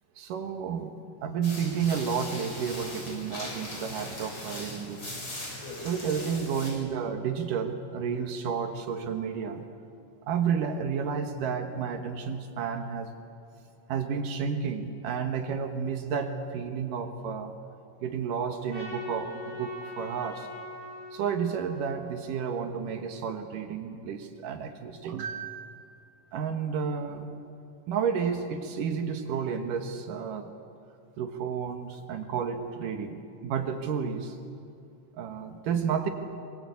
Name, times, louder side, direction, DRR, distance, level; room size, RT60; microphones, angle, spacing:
voice 1, 0.2-5.1 5.8-9.7 10.3-13.1 13.9-17.5 18.0-20.5 21.1-25.8 26.3-27.3 27.9-30.5 31.2-34.4 35.2-36.1, right 6 dB, 80° right, 6 dB, 3.1 m, -31 dB
sound 1, 1.4-6.7, left 1 dB, 40° left, 8.4 m, -39 dB
Trumpet, 18.7-23.1, left 2 dB, 80° left, 8.3 m, -43 dB
26.0 x 25.5 x 8.5 m, 2.5 s
omnidirectional pair, 3.7 m